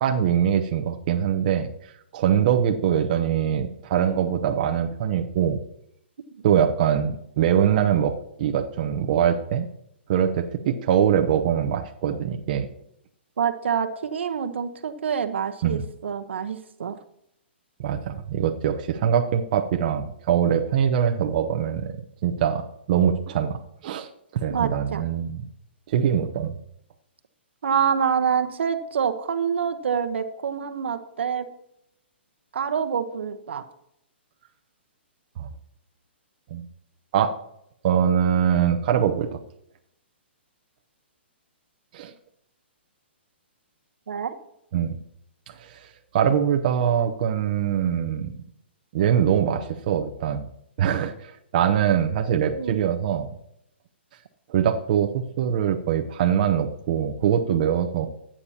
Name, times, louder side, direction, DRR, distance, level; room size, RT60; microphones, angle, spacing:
voice 1, 0.0-1.7 2.1-5.6 6.4-9.7 10.1-12.7 15.6-15.8 17.8-21.9 22.2-25.4 25.9-26.5 35.4-35.5 36.5-36.7 37.1-37.3 37.8-39.4 41.9-42.1 44.7-44.9 45.5-45.9 46.1-48.3 48.9-50.5 50.8-53.3 54.5-58.1, right 9 dB, 45° right, 4 dB, 0.8 m, -23 dB
voice 2, 13.4-17.0 24.5-25.0 27.6-31.4 32.5-33.6 44.1-44.3 52.5-52.8, right 7 dB, 75° right, 8 dB, 1.0 m, -26 dB
14.5 x 8.7 x 2.9 m, 0.76 s
hypercardioid pair, 155°, 6 cm